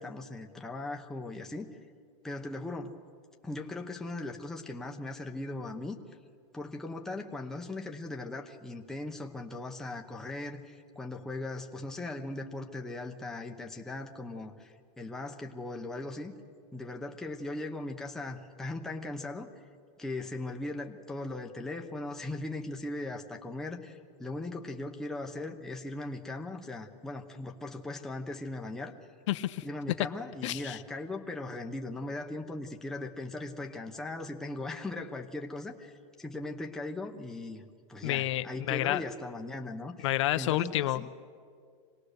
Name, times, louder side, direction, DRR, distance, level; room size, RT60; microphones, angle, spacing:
voice 1, 0.0-1.7 2.2-2.9 3.4-6.0 6.5-16.3 16.7-19.5 20.0-29.0 29.6-37.6 37.9-40.1 40.4-41.1, left 2 dB, 5° left, 1 dB, 0.8 m, -39 dB
voice 2, 29.3-29.7 30.4-30.8 38.0-39.0 40.0-41.1, left 15 dB, 60° left, 10 dB, 0.7 m, -30 dB
25.5 x 18.5 x 6.7 m, 2.1 s
supercardioid pair, 165°, 17 cm